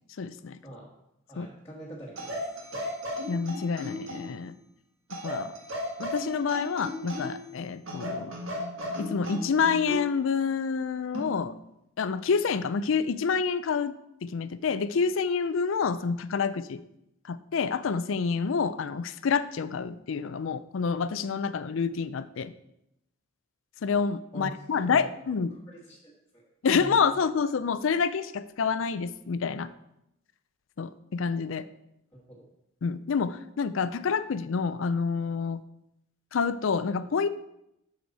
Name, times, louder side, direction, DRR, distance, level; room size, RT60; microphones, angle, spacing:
voice 1, 0.2-0.6 1.4-1.5 3.3-4.5 5.2-5.5 6.0-8.4 9.0-11.5 12.0-13.9 14.2-16.8 17.2-22.5 23.8-25.5 26.6-29.7 30.8-31.6 32.8-35.6 36.3-37.3, left 5 dB, 75° left, 14 dB, 0.4 m, -28 dB
voice 2, 1.3-2.9 24.3-25.4 25.7-26.5 26.8-26.9 32.1-32.4, right 1 dB, 10° left, -8 dB, 1.3 m, -45 dB
sound 1, 2.1-4.4 5.1-7.5 7.9-10.1 11.1-11.4, left 1 dB, 80° right, 1.6 m, -35 dB
7.8 x 6.5 x 4.1 m, 0.82 s
head